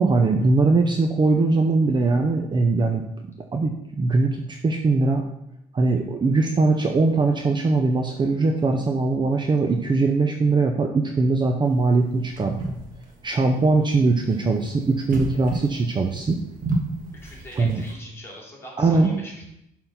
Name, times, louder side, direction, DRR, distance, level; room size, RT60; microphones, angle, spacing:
voice 1, 0.0-3.0 3.5-5.2 5.7-12.6 13.2-16.4 17.6-17.8 18.8-19.1, right 3 dB, 25° right, 4 dB, 0.6 m, -21 dB
sound 1, 11.7-17.9, right 2 dB, 55° right, 1.4 m, -33 dB
voice 2, 17.2-19.4, left 1 dB, 15° left, -3 dB, 2.7 m, -42 dB
6.6 x 3.8 x 5.7 m, 0.81 s
cardioid pair, 110°, 17 cm